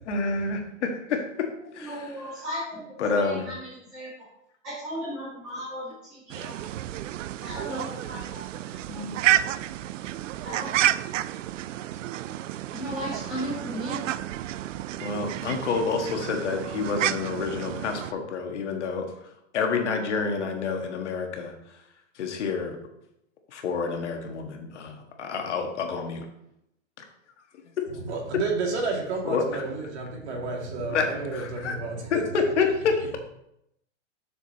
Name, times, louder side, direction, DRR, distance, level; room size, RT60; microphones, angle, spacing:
voice 1, 0.1-2.2 3.0-3.5 8.7-8.8 15.0-19.1 19.5-21.5 22.1-22.8 23.5-26.2 29.2-29.4 30.9-31.8 32.1-33.2, left 5 dB, 70° left, 3 dB, 1.6 m, -28 dB
voice 2, 1.8-4.2 4.6-6.5 7.4-9.1 10.4-10.9 12.7-14.1, equal, 5° right, -13 dB, 0.4 m, -36 dB
sound 1, 6.3-18.1, right 13 dB, 85° right, 0.5 m, -30 dB
voice 3, 27.9-32.4, right 3 dB, 60° right, 0 dB, 2.4 m, -31 dB
9.5 x 6.5 x 2.9 m, 0.80 s
supercardioid pair, 175°, 37 cm